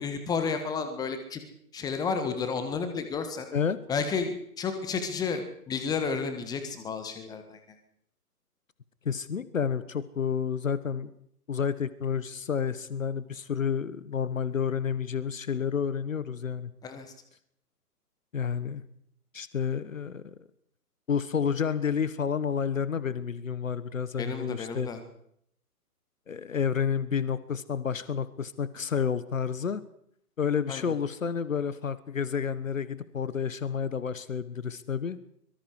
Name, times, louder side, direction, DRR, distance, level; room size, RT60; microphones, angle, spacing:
voice 1, 0.0-1.4 1.7-3.5 3.9-7.6 16.8-17.1 24.2-25.0 30.7-30.9, left 5 dB, 10° left, 8 dB, 1.5 m, -31 dB
voice 2, 9.0-11.1 11.5-16.7 18.3-18.8 19.3-20.2 21.1-24.9 26.3-29.8 30.4-35.2, left 7 dB, 55° left, 16 dB, 1.5 m, -30 dB
25.0 x 23.5 x 4.8 m, 0.69 s
figure-of-eight pair, 135°, 48 cm